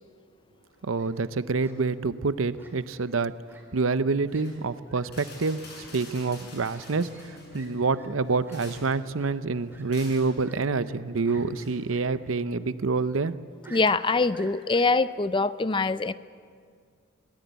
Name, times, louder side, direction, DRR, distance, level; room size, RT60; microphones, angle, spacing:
Fowl, 0.7-1.1 1.6-1.7 2.6-3.1 3.5-3.6 3.9-4.0 4.3-4.4 4.8-5.0 5.7-5.8 6.7-6.9 7.1-7.3 7.5-7.7 7.9-8.1 8.4-8.6 9.1-9.3 9.7-9.8 10.4-11.0 11.2-11.4 11.9-12.0 12.4-12.5 13.6-14.8, right 3 dB, 10° right, 3.8 m, -51 dB
voice 1, 0.8-3.3 3.7-13.3, right 4 dB, 80° right, 14 dB, 0.7 m, -27 dB
sound 1, 4.3-4.6 5.0-7.8 8.2-9.0 9.9-10.3 11.6-11.8, left 2 dB, 55° left, 7.8 m, -47 dB
sound 2, 7.1-12.7, left 4 dB, 75° left, 1.4 m, -50 dB
voice 2, 13.7-16.1, left 3 dB, 25° left, 14 dB, 0.5 m, -24 dB
23.0 x 18.0 x 8.2 m, 2.1 s
head